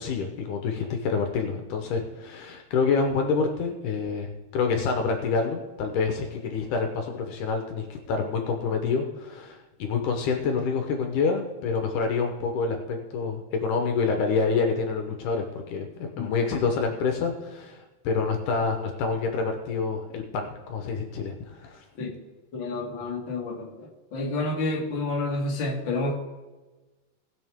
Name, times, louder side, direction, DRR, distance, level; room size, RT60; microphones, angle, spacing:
voice 1, 0.0-21.9, left 4 dB, 75° left, 4 dB, 2.5 m, -27 dB
voice 2, 22.5-26.1, left 2 dB, 40° left, -2 dB, 2.4 m, -29 dB
19.0 x 6.5 x 3.6 m, 1.2 s
omnidirectional pair, 3.7 m